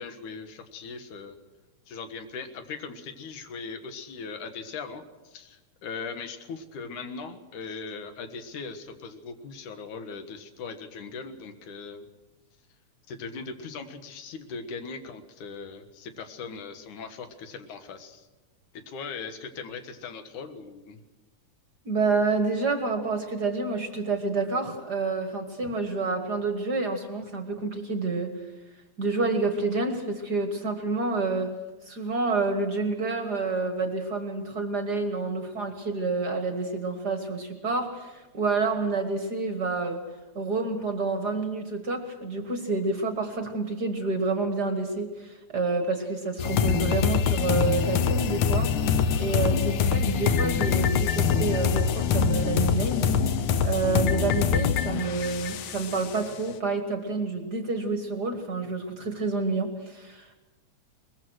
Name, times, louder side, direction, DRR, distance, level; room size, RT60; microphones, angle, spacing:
voice 1, 0.0-1.4 1.9-12.1 13.1-18.3 18.7-21.0, left 5 dB, 90° left, 8 dB, 3.0 m, -39 dB
voice 2, 21.8-28.3 29.0-31.5 31.9-40.0 40.3-48.7 49.2-53.1 53.6-60.3, right 3 dB, 45° right, 6 dB, 1.6 m, -28 dB
sound 1, 46.4-56.3, left 7 dB, 65° left, 1.3 m, -24 dB
22.0 x 21.0 x 6.4 m, 1.2 s
omnidirectional pair, 3.4 m